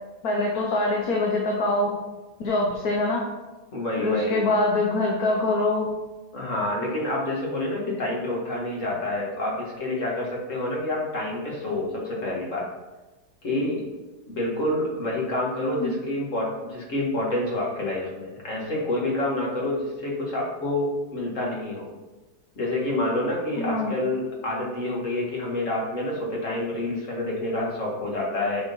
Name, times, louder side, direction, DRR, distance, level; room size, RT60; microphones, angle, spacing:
voice 1, 0.2-2.0 2.4-3.2 4.0-5.9 7.9-8.0 15.8-15.9 23.6-23.9, left 2 dB, 60° left, -1 dB, 1.4 m, -24 dB
voice 2, 3.7-4.5 6.3-12.6 13.4-13.9 14.3-21.9 22.6-28.6, left 1 dB, 45° left, -3 dB, 2.2 m, -28 dB
7.3 x 4.5 x 5.5 m, 1.2 s
omnidirectional pair, 1.8 m